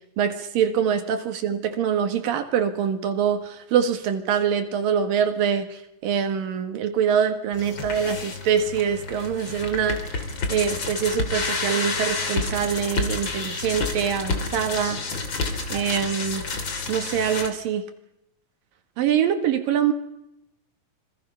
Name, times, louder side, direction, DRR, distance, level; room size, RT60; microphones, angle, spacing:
voice 1, 0.2-10.2 10.5-15.0 15.7-16.5 16.9-17.8 19.0-19.9, right 8 dB, 80° right, 7 dB, 3.5 m, -24 dB
sound 1, 7.5-17.5, left 3 dB, 35° left, 3.0 m, -29 dB
27.0 x 24.5 x 5.8 m, 0.85 s
omnidirectional pair, 3.9 m